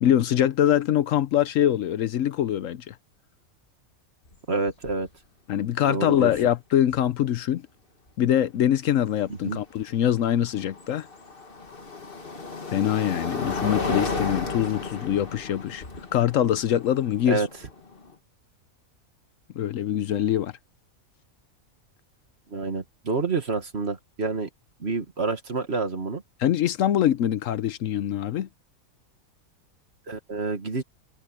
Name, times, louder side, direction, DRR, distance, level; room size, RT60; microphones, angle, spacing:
voice 1, 0.0-2.9 5.5-7.6 8.2-11.1 12.7-15.8 16.1-17.4 19.6-20.5 26.4-28.5, left 11 dB, 70° left, 1.0 m, -23 dB
sound 1, 4.3-4.4 4.7-5.1 6.9-7.0 10.0-18.1, left 4 dB, 40° left, 2.0 m, -33 dB
voice 2, 4.5-5.1 5.8-6.3 9.3-9.6 17.3-17.5 22.5-24.5 24.8-26.2 30.1-30.8, right 4 dB, 50° right, 2.0 m, -28 dB
omnidirectional pair, 1.5 m